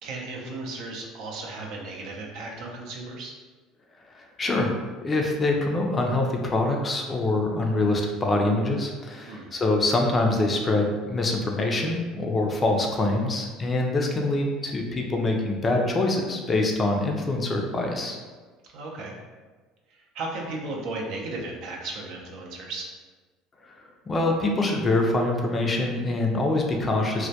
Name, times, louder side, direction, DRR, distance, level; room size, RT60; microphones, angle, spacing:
voice 1, 0.0-3.3 9.3-9.5 18.7-19.1 19.9-22.9, right 2 dB, 65° right, -1 dB, 0.5 m, -35 dB
voice 2, 4.1-4.7 5.0-18.2 23.7-23.8 24.1-27.3, left 2 dB, 25° left, 1 dB, 0.4 m, -25 dB
2.1 x 2.1 x 2.7 m, 1.4 s
supercardioid pair, 105°, 0 cm